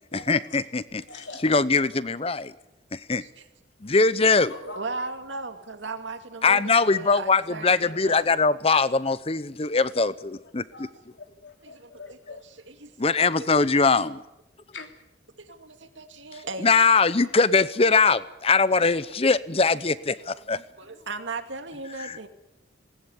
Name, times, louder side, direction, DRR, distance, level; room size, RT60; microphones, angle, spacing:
voice 1, 0.1-1.0 1.4-2.5 2.9-3.2 3.8-4.5 6.4-10.9 13.0-14.2 16.6-20.6 22.0-22.3, left 4 dB, 30° left, 17 dB, 0.8 m, -22 dB
voice 2, 1.1-1.4 4.5-5.1 10.7-10.9 11.2-12.5 14.7-15.0, left 3 dB, 80° left, 6 dB, 3.0 m, -43 dB
voice 3, 4.5-8.3 11.6-12.4 12.7-13.6 15.4-16.7 20.8-22.3, right 3 dB, 85° right, 7 dB, 2.5 m, -37 dB
20.0 x 19.0 x 9.6 m, 0.90 s
head